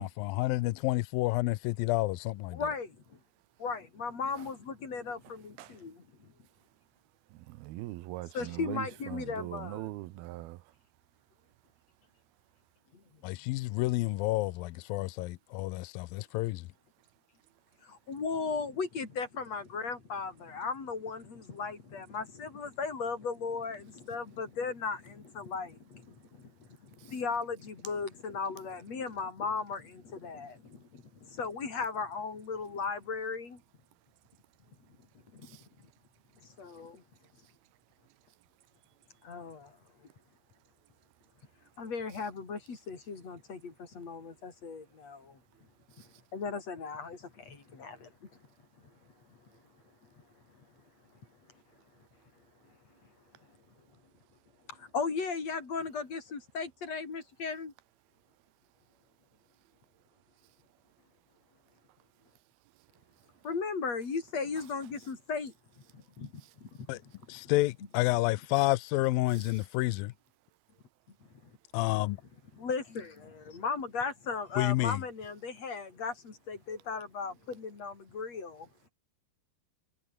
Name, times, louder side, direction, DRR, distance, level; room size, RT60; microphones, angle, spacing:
voice 1, 0.0-2.6 13.2-16.6 66.9-67.0 67.3-70.1 71.7-72.2 74.6-75.0, left 19 dB, 80° left, 2.1 m, -29 dB
voice 2, 2.5-3.2 3.6-6.3 8.3-9.9 17.8-26.5 26.8-33.6 35.3-35.6 36.6-37.0 39.2-39.7 41.8-45.4 46.3-48.3 54.7-57.7 63.4-65.5 65.9-66.3 66.6-67.1 67.4-67.5 72.5-78.7, left 5 dB, 40° left, 5.5 m, -37 dB
voice 3, 7.3-10.6 27.0-27.1 35.4-35.6 46.0-46.1 69.4-69.5, right 17 dB, 80° right, 2.5 m, -41 dB
omnidirectional pair, 4.8 m